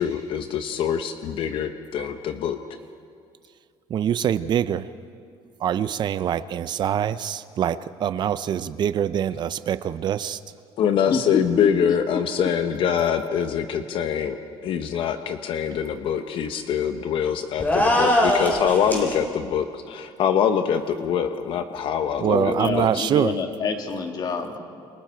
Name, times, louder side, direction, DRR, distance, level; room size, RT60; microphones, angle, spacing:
voice 1, 0.0-2.6 10.8-14.4 14.6-23.0, left 8 dB, 60° left, 7 dB, 1.0 m, -24 dB
voice 2, 3.9-4.9 5.6-10.4 22.2-23.3, right 9 dB, 45° right, 14 dB, 0.6 m, -24 dB
voice 3, 11.1-12.2 22.3-24.6, left 4 dB, 45° left, 3 dB, 2.6 m, -27 dB
sound 1, 17.6-19.1, left 1 dB, 15° left, 4.0 m, -21 dB
28.5 x 24.5 x 4.6 m, 2.3 s
cardioid pair, 120°, 10 cm